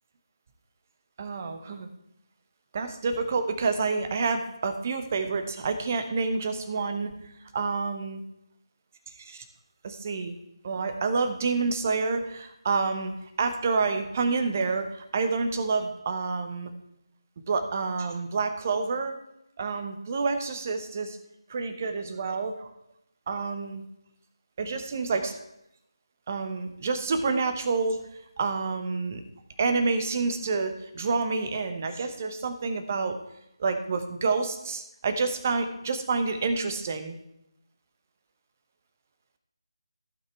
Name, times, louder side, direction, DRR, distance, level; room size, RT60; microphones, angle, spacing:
voice 1, 1.2-1.9 2.7-7.1 7.5-8.2 9.2-9.4 9.8-10.3 10.6-13.1 13.4-16.7 17.5-19.2 19.6-21.2 21.5-22.7 23.3-23.8 24.6-25.4 26.3-29.2 29.6-33.2 33.6-37.1, right 4 dB, 25° right, 8 dB, 1.0 m, -28 dB
15.0 x 5.8 x 4.5 m, 0.84 s
figure-of-eight pair, 160°, 3 cm